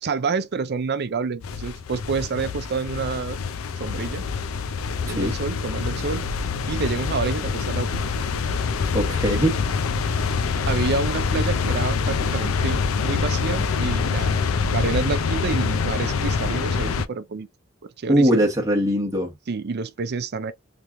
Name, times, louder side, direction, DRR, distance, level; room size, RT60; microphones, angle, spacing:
voice 1, 0.0-3.4 3.8-4.2 5.0-6.3 6.7-8.0 10.7-14.5 14.7-17.5 18.0-18.5 19.5-20.5, right 5 dB, 55° right, 0.5 m, -28 dB
sound 1, 1.4-17.1, left 5 dB, 90° left, 0.5 m, -25 dB
voice 2, 8.9-9.6 18.1-19.3, equal, 15° right, 1.0 m, -20 dB
3.4 x 3.1 x 2.4 m
head